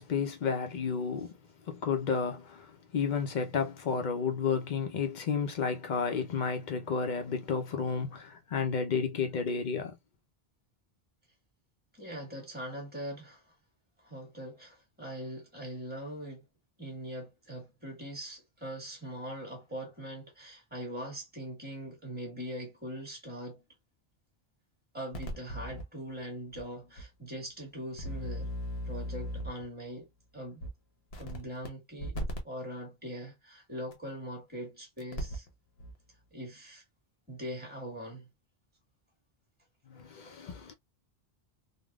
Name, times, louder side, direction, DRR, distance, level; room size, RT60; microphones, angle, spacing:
voice 1, 0.0-1.3 1.7-2.7 2.9-10.0 39.9-40.7, left 5 dB, 55° left, 0.7 m, -31 dB
voice 2, 11.9-13.5 14.0-16.5 16.8-23.6 24.9-28.5 28.8-30.7 31.2-32.2 32.4-35.4 36.3-36.8 37.3-38.3, equal, 10° right, 1.5 m, -41 dB
sound 1, 25.1-25.8 26.5-26.6 27.0-27.1 28.0-29.7 30.6-30.7 31.1-31.7 32.0-32.4 33.9-34.0 35.0-35.5 35.8-35.9, equal, 85° left, 1.1 m, -37 dB
3.5 x 2.1 x 2.3 m
omnidirectional pair, 1.1 m